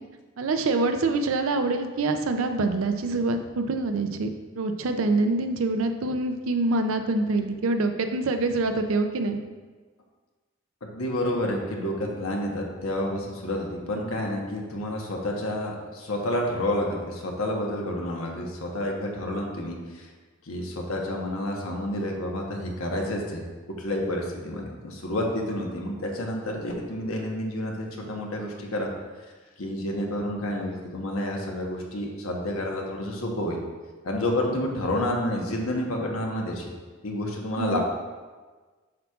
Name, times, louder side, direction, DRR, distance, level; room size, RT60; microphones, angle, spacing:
voice 1, 0.4-9.4 37.6-37.8, right 3 dB, 75° right, 7 dB, 0.5 m, -25 dB
voice 2, 10.8-20.1 20.5-23.4 23.8-28.9 29.6-33.6 34.0-36.7 37.0-37.8, left 1 dB, 85° left, 0 dB, 1.0 m, -29 dB
7.3 x 5.9 x 2.4 m, 1.4 s
head